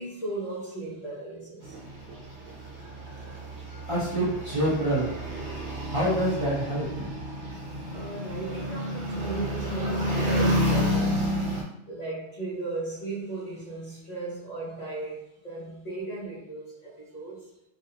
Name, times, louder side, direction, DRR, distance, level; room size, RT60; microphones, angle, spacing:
voice 1, 0.0-1.8 7.9-11.5 11.9-17.5, right 3 dB, 45° left, -5 dB, 0.6 m, -36 dB
sound 1, 1.6-11.6, equal, 90° right, 1.0 m, -30 dB
voice 2, 3.9-5.3 5.9-7.1, right 1 dB, 40° right, -8 dB, 0.5 m, -27 dB
2.4 x 2.2 x 2.7 m, 0.85 s
omnidirectional pair, 1.1 m